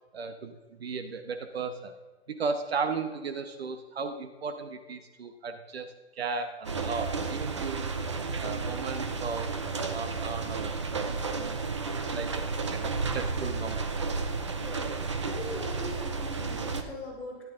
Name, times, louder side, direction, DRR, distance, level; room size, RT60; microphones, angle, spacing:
voice 1, 0.1-1.9 2.3-7.9 8.4-9.6 9.9-11.6 12.1-12.4 12.7-14.1, right 4 dB, 65° right, 8 dB, 1.1 m, -36 dB
sound 1, 6.6-16.8, right 4 dB, 25° right, 0.5 m, -32 dB
voice 2, 14.5-14.9 15.2-17.4, left 2 dB, 5° left, -11 dB, 4.2 m, -40 dB
13.5 x 12.5 x 3.8 m, 1.2 s
hypercardioid pair, 180°, 34 cm